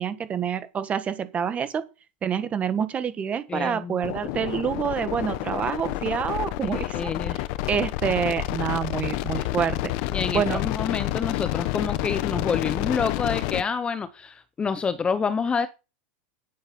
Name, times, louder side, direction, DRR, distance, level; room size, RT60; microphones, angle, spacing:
voice 1, 0.0-1.8 2.2-9.8 10.3-10.6, right 7 dB, 20° right, 1.5 m, -27 dB
voice 2, 3.5-4.0 6.6-7.4 9.3-9.5 10.1-15.7, left 5 dB, 15° left, 0.7 m, -28 dB
sound 1, 4.0-13.6, left 16 dB, 50° left, 1.0 m, -29 dB
10.0 x 8.8 x 5.6 m
supercardioid pair, 145°, 6 cm